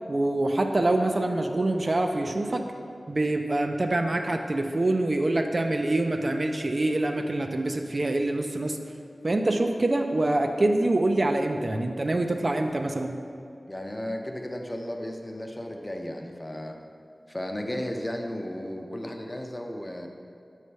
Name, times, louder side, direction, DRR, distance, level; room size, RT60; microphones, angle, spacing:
voice 1, 0.1-2.6 3.1-8.8 9.2-13.2, right 2 dB, 45° right, 4 dB, 0.4 m, -25 dB
voice 2, 13.7-16.8 17.3-20.1, left 1 dB, 25° left, 2 dB, 0.6 m, -34 dB
7.7 x 3.3 x 5.4 m, 2.5 s
wide cardioid pair, 80°, 0 cm